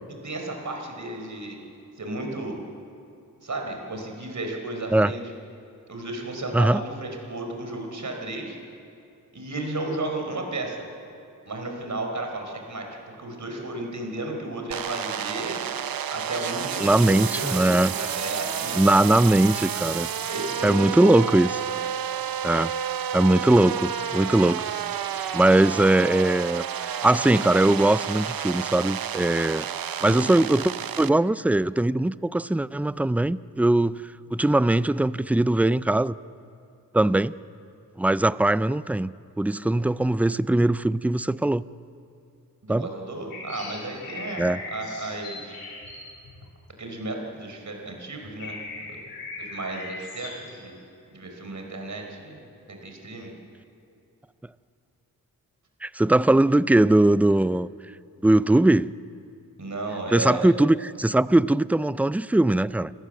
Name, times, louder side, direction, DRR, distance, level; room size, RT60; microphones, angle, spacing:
voice 1, 0.2-1.6 2.0-2.6 3.4-5.2 5.9-8.6 9.3-10.8 11.4-15.6 16.1-19.5 20.3-21.2 30.0-30.3 42.6-45.6 46.8-49.0 49.3-50.8 51.1-52.4 52.7-53.3 59.6-60.5, right 2 dB, 55° right, 2 dB, 5.0 m, -33 dB
sound 1, 14.7-31.1, right 8 dB, 80° right, 0.8 m, -30 dB
voice 2, 16.8-17.9 18.8-20.1 20.6-21.5 22.4-22.7 23.1-24.7 25.3-30.7 31.0-34.0 34.3-36.1 36.9-37.3 38.0-41.6 42.7-42.9 44.4-44.6 55.8-57.7 58.2-58.9 60.1-62.9, right 1 dB, 5° right, 17 dB, 0.4 m, -20 dB
sound 2, 43.3-47.2 47.8-47.9 48.2-50.7, left 3 dB, 85° left, 4.1 m, -39 dB
28.5 x 14.5 x 7.7 m, 2.7 s
cardioid pair, 65°, 35 cm